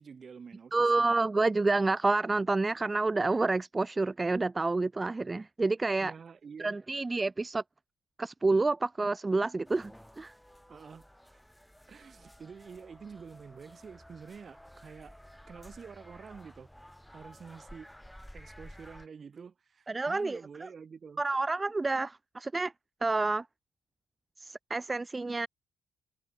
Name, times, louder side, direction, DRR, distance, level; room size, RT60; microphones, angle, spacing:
voice 1, 0.0-1.2 6.0-6.8 10.7-11.0 11.9-15.1 15.5-16.7 17.1-17.9 18.3-21.2, right 6 dB, 45° right, 2.9 m, -48 dB
voice 2, 0.7-6.1 6.6-7.6 8.2-10.3 19.9-20.7 21.2-22.7 23.0-23.4 24.4-25.5, right 3 dB, 20° right, 0.7 m, -29 dB
sound 1, 9.6-19.1, equal, 5° left, 4.2 m, -53 dB
cardioid pair, 90°, 0 cm